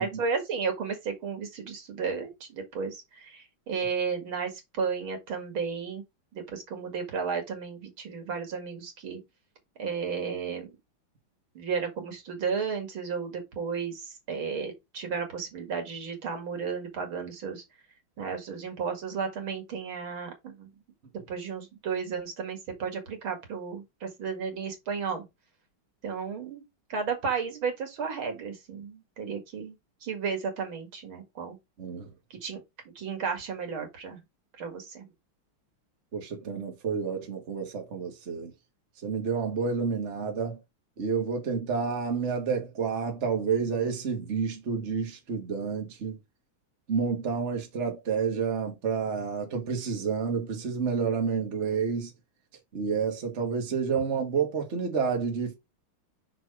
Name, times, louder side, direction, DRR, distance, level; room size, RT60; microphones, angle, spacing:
voice 1, 0.0-6.0 6.5-9.2 9.8-10.7 11.5-17.6 18.2-20.7 21.3-25.2 26.0-26.6 26.9-29.8 30.0-31.6 32.3-32.6 33.0-34.2 34.6-35.1, right 5 dB, 75° right, 2.8 m, -33 dB
voice 2, 36.1-38.5 39.0-40.6 41.0-46.2 46.9-52.1 52.7-55.5, right 5 dB, 35° right, 1.7 m, -29 dB
5.9 x 4.5 x 4.8 m
omnidirectional pair, 2.3 m